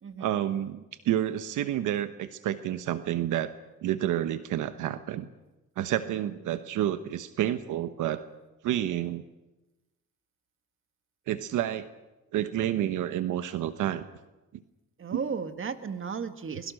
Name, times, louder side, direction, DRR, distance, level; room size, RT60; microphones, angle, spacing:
voice 1, 0.2-3.5 3.8-5.3 5.8-8.3 8.6-9.2 11.3-11.9 12.3-14.1 14.5-14.6 15.1-15.2, right 12 dB, 85° right, 10 dB, 1.1 m, -29 dB
voice 2, 15.0-16.7, right 6 dB, 45° right, 8 dB, 1.8 m, -34 dB
24.0 x 22.0 x 6.5 m, 1.0 s
cardioid pair, 90°, 30 cm